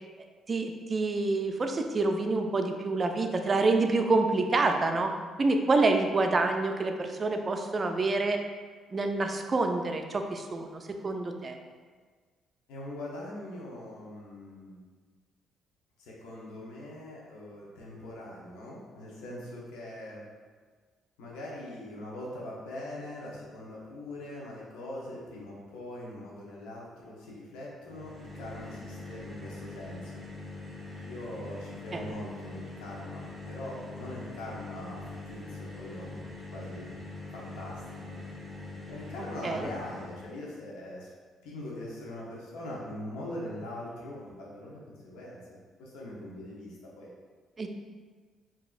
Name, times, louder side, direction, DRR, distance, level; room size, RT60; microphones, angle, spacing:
voice 1, 0.5-5.1 5.4-8.4 8.9-11.6 31.9-32.1 39.4-39.7 47.6-47.7, right 3 dB, 40° right, 5 dB, 0.4 m, -27 dB
voice 2, 12.7-14.8 16.0-20.2 21.2-30.1 31.0-36.2 36.5-36.9 37.3-38.3 38.9-41.1 41.4-45.4 45.8-47.1, left 1 dB, 80° left, -5 dB, 0.9 m, -42 dB
sound 1, 27.8-40.4, left 2 dB, 10° right, 1.1 m, -43 dB
4.8 x 2.7 x 2.4 m, 1.5 s
supercardioid pair, 55°, 0 cm